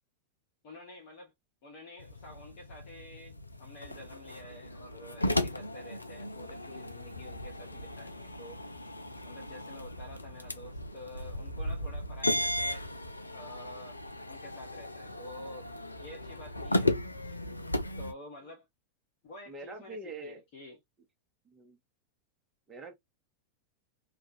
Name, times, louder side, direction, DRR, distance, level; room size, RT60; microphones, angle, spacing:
voice 1, 0.6-1.3 1.6-8.6 9.2-12.8 13.3-14.0 14.3-15.7 16.0-16.9 17.2-17.4 18.0-18.7 19.2-20.8, left 1 dB, 45° left, 0.9 m, -49 dB
sound 1, 2.0-18.1, left 1 dB, 85° left, 0.3 m, -36 dB
voice 2, 19.5-20.4 21.4-21.8 22.7-22.9, right 2 dB, 20° right, 0.9 m, -44 dB
2.4 x 2.3 x 2.6 m
figure-of-eight pair, 90°, 0 cm